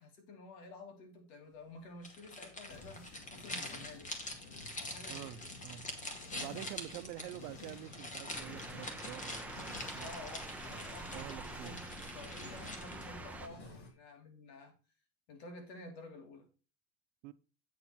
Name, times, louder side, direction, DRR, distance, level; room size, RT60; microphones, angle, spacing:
voice 1, 0.0-4.1 4.8-5.3 6.3-6.6 10.0-14.7 15.3-16.5, left 2 dB, 90° left, 2.9 m, -51 dB
sound 1, 2.0-13.2, left 1 dB, 15° left, 1.2 m, -45 dB
sound 2, 2.7-13.9, left 3 dB, 60° left, 2.6 m, -53 dB
voice 2, 5.0-5.9 6.3-10.2 11.1-11.9 13.5-13.8 17.2-17.3, right 16 dB, 70° right, 0.8 m, -47 dB
sound 3, 8.3-13.5, right 2 dB, 5° right, 0.7 m, -46 dB
8.4 x 4.3 x 5.9 m
supercardioid pair, 140°, 49 cm